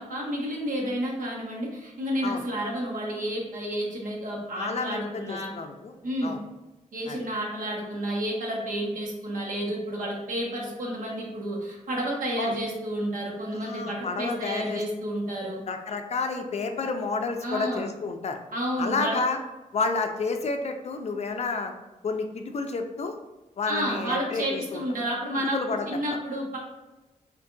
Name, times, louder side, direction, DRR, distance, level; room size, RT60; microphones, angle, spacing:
voice 1, 0.0-5.5 6.0-6.3 6.9-15.6 17.4-17.8 18.5-19.2 23.7-25.6 25.9-26.6, equal, 75° right, -3 dB, 1.0 m, -30 dB
voice 2, 4.5-5.9 6.2-6.4 7.1-7.2 12.4-12.6 13.5-14.8 15.7-18.4 18.8-19.4 19.7-21.7 22.0-23.2 23.6-24.8 25.5-25.9, left 4 dB, 50° left, 5 dB, 0.4 m, -30 dB
4.6 x 2.5 x 2.6 m, 1.1 s
wide cardioid pair, 120°, 14 cm